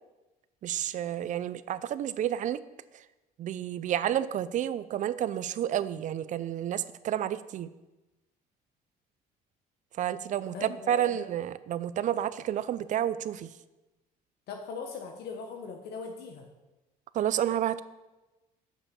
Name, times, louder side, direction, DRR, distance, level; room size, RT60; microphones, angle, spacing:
voice 1, 0.6-2.6 3.4-7.7 10.0-13.5 17.1-17.8, right 10 dB, 50° right, 16 dB, 0.4 m, -30 dB
voice 2, 10.5-11.2 14.5-16.4, left 5 dB, 75° left, 3 dB, 0.9 m, -40 dB
7.1 x 5.6 x 5.4 m, 1.0 s
cardioid pair, 110°, 17 cm